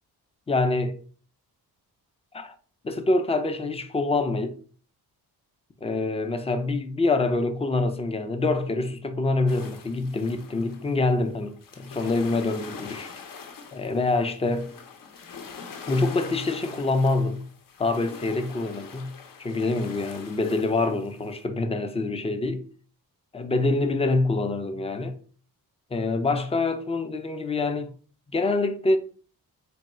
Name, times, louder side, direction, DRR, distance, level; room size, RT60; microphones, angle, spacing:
voice 1, 0.5-1.0 2.3-2.5 2.8-4.5 5.8-13.1 13.7-14.7 15.9-17.4 17.8-19.1 19.4-22.6 23.3-25.2 25.9-27.9 28.3-29.0, left 3 dB, 15° left, 0.4 m, -25 dB
sound 1, 9.5-21.4, left 5 dB, 55° left, 0.7 m, -44 dB
3.5 x 2.2 x 4.1 m
cardioid pair, 100°, 39 cm